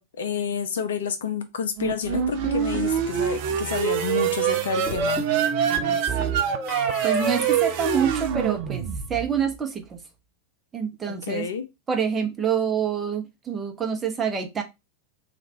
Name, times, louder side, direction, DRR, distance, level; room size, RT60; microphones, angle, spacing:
voice 1, 0.0-5.3 11.1-11.6, left 6 dB, 60° left, 0.6 m, -29 dB
sound 1, 1.8-9.4, right 8 dB, 45° right, 0.5 m, -25 dB
sound 2, 2.1-3.0 4.9-8.6, right 4 dB, ahead, 1.2 m, -32 dB
voice 2, 5.6-6.4 7.0-10.0 10.7-11.4 11.9-14.6, right 7 dB, 20° right, 0.8 m, -27 dB
3.3 x 2.5 x 4.2 m
figure-of-eight pair, 90°, 0 cm